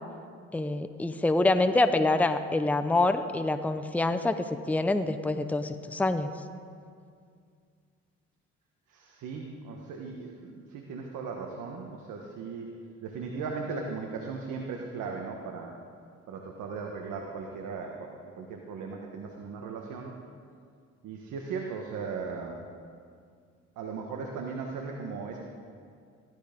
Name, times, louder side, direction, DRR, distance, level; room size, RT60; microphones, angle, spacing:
voice 1, 0.5-6.3, left 2 dB, 5° left, 9 dB, 0.7 m, -26 dB
voice 2, 8.9-12.7 13.0-15.8 16.3-20.2 21.0-22.6 23.8-25.4, right 4 dB, 85° right, 1 dB, 1.4 m, -37 dB
16.0 x 12.5 x 5.3 m, 2.2 s
cardioid pair, 90°, 30 cm